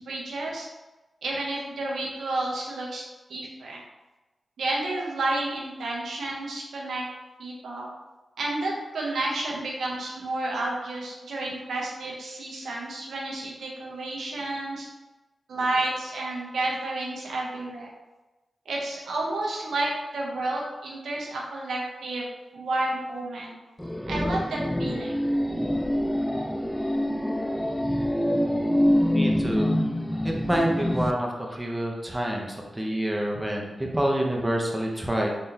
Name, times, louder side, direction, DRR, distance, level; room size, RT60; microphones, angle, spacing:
voice 1, 0.1-0.7 1.2-3.0 3.3-3.8 4.6-7.0 7.4-7.9 8.4-14.9 15.5-17.9 18.7-22.3 22.5-23.5 24.1-25.1, right 2 dB, 85° right, -3 dB, 0.7 m, -31 dB
sound 1, 23.8-31.1, equal, 5° left, 0.4 m, -25 dB
voice 2, 29.1-29.7 30.2-35.3, right 1 dB, 15° right, -1 dB, 0.8 m, -27 dB
3.7 x 3.3 x 2.8 m, 1.1 s
cardioid pair, 40°, 0 cm